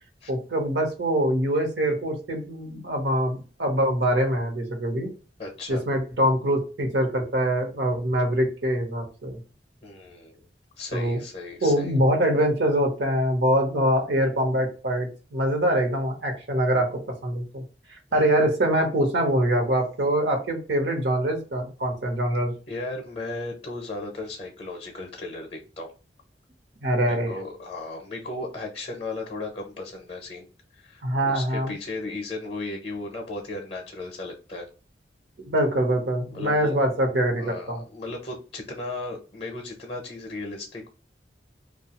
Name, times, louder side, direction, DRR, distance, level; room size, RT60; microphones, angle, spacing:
voice 1, 0.3-5.1 5.7-9.4 10.9-11.2 11.6-17.6 17.9-22.5 26.8-27.3 31.0-31.7 35.4-37.8, right 1 dB, 80° right, 3 dB, 0.9 m, -24 dB
voice 2, 5.4-5.8 9.8-10.5 10.8-11.9 18.1-18.3 22.7-25.9 27.0-30.5 30.7-34.7 36.3-36.8 37.4-40.9, left 2 dB, 35° left, 2 dB, 0.6 m, -35 dB
2.7 x 2.3 x 2.8 m, 0.34 s
head